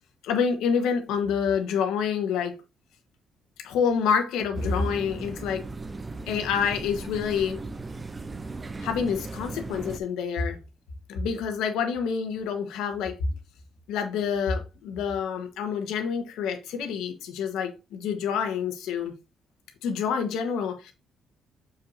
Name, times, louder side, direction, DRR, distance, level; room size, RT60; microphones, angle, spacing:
voice 1, 0.2-2.6 3.6-5.7 6.3-7.6 8.8-10.6 11.1-13.2 13.9-19.1 19.8-20.9, left 6 dB, 90° left, 1.3 m, -27 dB
sound 1, 4.6-10.0, right 3 dB, 25° right, 0.6 m, -37 dB
6.6 x 5.7 x 2.7 m
cardioid pair, 90°, 0 cm